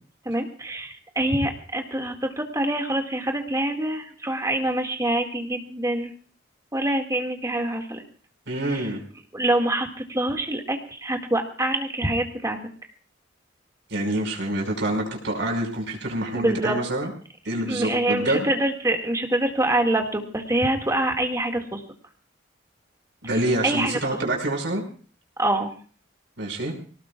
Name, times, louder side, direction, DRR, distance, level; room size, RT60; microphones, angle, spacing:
voice 1, 0.3-6.1 6.7-8.0 8.7-8.9 9.3-12.6 16.3-16.8 17.7-21.8 23.6-23.9 25.4-25.7, right 1 dB, 15° right, 3 dB, 2.0 m, -25 dB
voice 2, 8.5-9.0 13.9-17.1 17.4-18.5 23.2-24.8 26.4-26.7, right 1 dB, 70° right, 1 dB, 5.5 m, -26 dB
25.0 x 18.5 x 2.4 m, 0.41 s
head